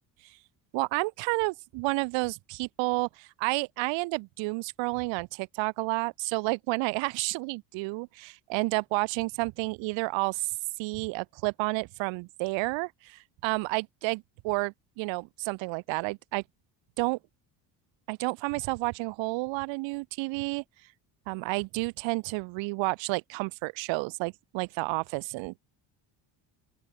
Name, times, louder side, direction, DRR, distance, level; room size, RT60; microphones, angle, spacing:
voice 1, 0.7-10.5 10.8-16.4 17.0-17.2 18.1-20.6 21.3-25.5, right 26 dB, 85° right, 1.4 m, -30 dB
open air
cardioid pair, 165°, 44 cm